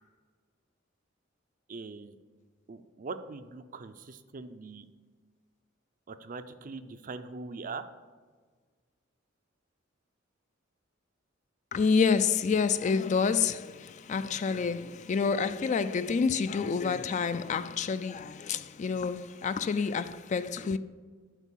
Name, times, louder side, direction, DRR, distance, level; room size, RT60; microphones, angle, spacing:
voice 1, 1.7-2.1 2.7-4.8 6.1-7.8, right 4 dB, 45° right, 0.5 m, -41 dB
voice 2, 11.7-13.7 14.1-20.8, left 5 dB, 40° left, 0.3 m, -28 dB
8.1 x 4.5 x 7.3 m
head